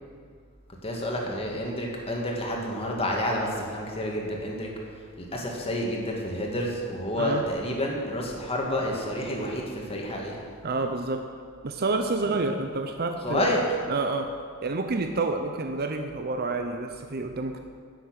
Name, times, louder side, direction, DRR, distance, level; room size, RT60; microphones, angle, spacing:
voice 1, 0.8-4.7 5.2-10.4 12.2-12.3 13.2-13.7, left 1 dB, 25° left, -1 dB, 2.1 m, -29 dB
voice 2, 10.6-11.2 11.6-13.5 13.9-14.3 14.6-17.6, right 3 dB, 45° right, 5 dB, 0.7 m, -28 dB
10.5 x 7.5 x 9.0 m, 2.1 s
head